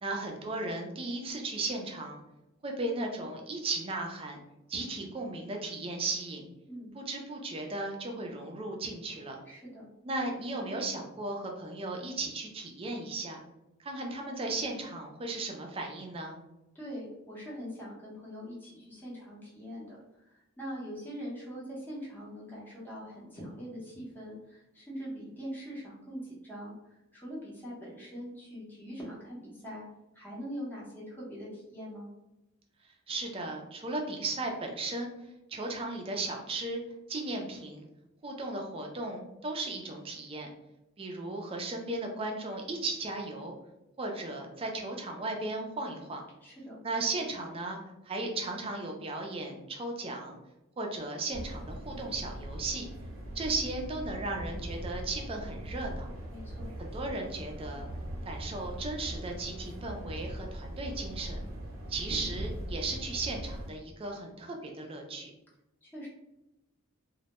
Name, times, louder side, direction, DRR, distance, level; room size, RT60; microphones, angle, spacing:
voice 1, 0.0-2.2 2.6-4.4 4.7-6.4 6.9-9.4 10.0-13.4 13.8-16.4 33.1-35.1 35.5-36.8 37.1-37.9 38.2-40.5 41.0-43.5 44.0-46.2 46.8-47.8 48.0-50.4 50.8-52.8 53.3-56.1 56.8-57.9 58.2-61.4 61.9-65.3, right 2 dB, 25° right, 2 dB, 0.4 m, -36 dB
voice 2, 9.4-9.9 16.7-29.8 30.1-32.1 46.4-46.8 56.3-56.7 65.8-66.1, equal, 10° left, -6 dB, 0.7 m, -43 dB
sound 1, 51.3-63.7, right 1 dB, 80° right, 0.6 m, -40 dB
2.1 x 2.1 x 2.8 m, 0.93 s
head